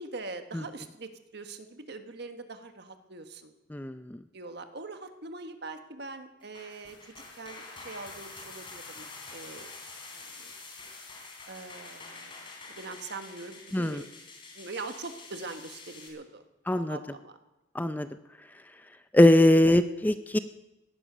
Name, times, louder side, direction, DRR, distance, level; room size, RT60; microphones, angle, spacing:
voice 1, 0.0-3.5 4.3-7.0 7.4-9.7 10.1-10.5 11.5-12.3 12.7-14.1 14.5-17.4, right 3 dB, 55° right, 8 dB, 1.4 m, -42 dB
voice 2, 3.7-4.2 13.7-14.0 16.7-17.0 17.7-18.1 19.1-20.4, left 1 dB, 10° left, 10 dB, 0.5 m, -22 dB
sound 1, 6.4-16.1, left 3 dB, 25° left, 3.4 m, -46 dB
17.5 x 11.0 x 6.7 m, 0.98 s
head